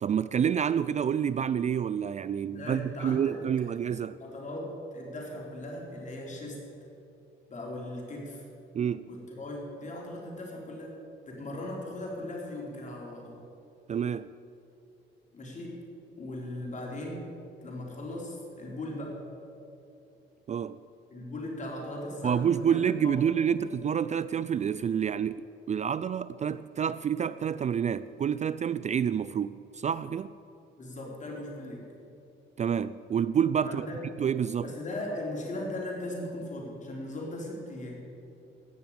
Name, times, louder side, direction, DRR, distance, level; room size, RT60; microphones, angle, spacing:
voice 1, 0.0-4.2 8.7-9.1 13.9-14.3 20.5-20.8 22.2-30.3 32.6-33.9 34.2-34.7, right 8 dB, 35° right, 0.4 m, -28 dB
voice 2, 2.5-3.4 3.7-3.9 4.2-6.6 7.5-8.4 9.1-11.0 11.3-13.4 15.3-15.8 16.2-17.3 17.6-19.2 21.1-23.2 30.8-31.9 33.6-34.0 34.6-38.0, left 1 dB, 40° left, 4.3 m, -38 dB
16.5 x 6.8 x 8.8 m
cardioid pair, 90°, 20 cm